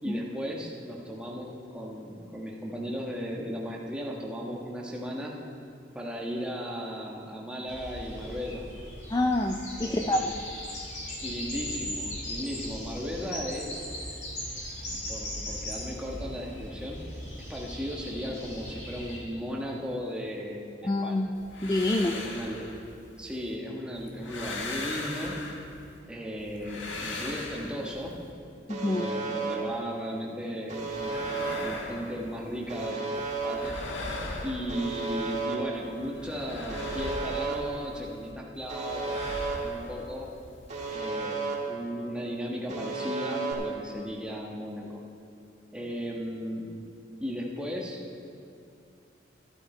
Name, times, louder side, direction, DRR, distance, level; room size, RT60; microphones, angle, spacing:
voice 1, 0.0-5.3 5.9-8.6 9.8-10.3 11.2-13.8 14.9-17.0 17.3-21.3 22.1-22.7 23.2-25.4 26.1-28.2 28.8-33.8 34.4-40.3 40.9-45.0 45.7-46.7 47.2-48.0, equal, 5° right, -2 dB, 1.3 m, -36 dB
sound 1, 7.7-19.2, left 1 dB, 40° left, 2.7 m, -38 dB
voice 2, 9.1-10.3 20.8-21.3 21.6-22.2 28.7-29.1, left 1 dB, 20° left, 4 dB, 0.4 m, -27 dB
sound 2, 21.4-23.5 24.0-26.0 26.4-28.3 30.7-32.9 33.2-35.4 35.7-38.3 38.6-40.9, left 2 dB, 85° left, 1.4 m, -39 dB
Alarm, 28.7-29.5 30.7-31.5 32.7-33.5 34.7-35.5 36.7-37.5 38.7-39.5 40.7-41.5 42.7-43.5, right 4 dB, 40° right, 1.5 m, -33 dB
13.0 x 12.0 x 4.4 m, 2.5 s
head